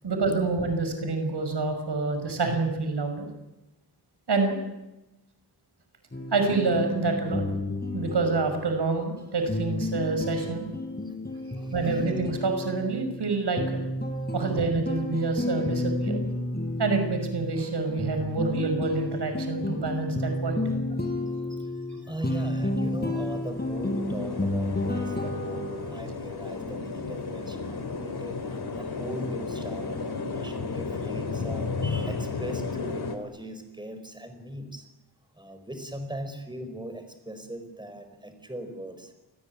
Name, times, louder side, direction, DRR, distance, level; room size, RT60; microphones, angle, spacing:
voice 1, 0.0-3.3 4.3-4.6 6.3-7.5 7.9-10.7 11.7-13.6 14.3-16.2 16.8-20.6, right 3 dB, 80° right, 6 dB, 6.0 m, -27 dB
sound 1, 6.1-26.0, left 2 dB, 25° left, 5.7 m, -31 dB
voice 2, 11.0-12.0 21.0-34.9 35.3-39.1, right 1 dB, 10° right, 8 dB, 4.6 m, -40 dB
sound 2, 22.3-22.4 22.7-33.2, left 4 dB, 70° left, 3.6 m, -33 dB
28.5 x 19.5 x 9.7 m, 0.99 s
wide cardioid pair, 95°, 40 cm